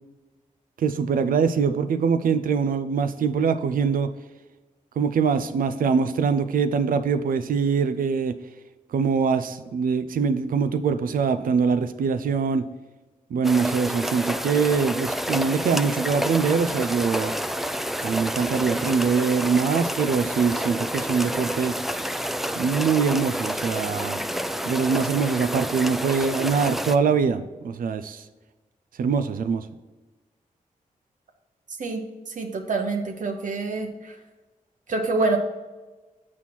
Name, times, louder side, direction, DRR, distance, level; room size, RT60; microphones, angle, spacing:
voice 1, 0.8-4.1 5.0-8.4 8.9-12.7 13.3-17.3 18.0-21.7 22.5-24.2 24.7-28.2 29.0-29.7, right 5 dB, 85° right, 10 dB, 0.5 m, -23 dB
sound 1, 13.4-27.0, equal, ahead, 0.3 m, -29 dB
voice 2, 32.4-33.9 34.9-35.4, right 3 dB, 65° right, 3 dB, 0.9 m, -26 dB
7.1 x 4.3 x 4.4 m, 1.2 s
cardioid pair, 60°, 14 cm